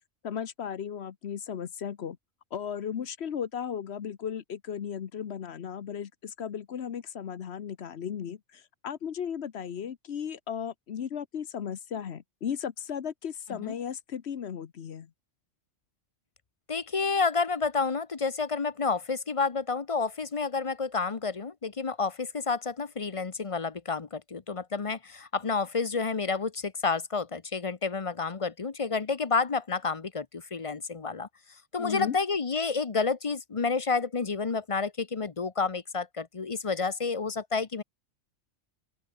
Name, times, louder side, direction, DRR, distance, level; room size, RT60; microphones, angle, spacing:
voice 1, 0.2-2.2 2.5-15.1 31.8-32.2, left 8 dB, 60° left, 1.1 m, -35 dB
voice 2, 16.7-31.3 31.7-37.8, left 4 dB, 30° left, 0.8 m, -30 dB
open air
omnidirectional pair, 1.3 m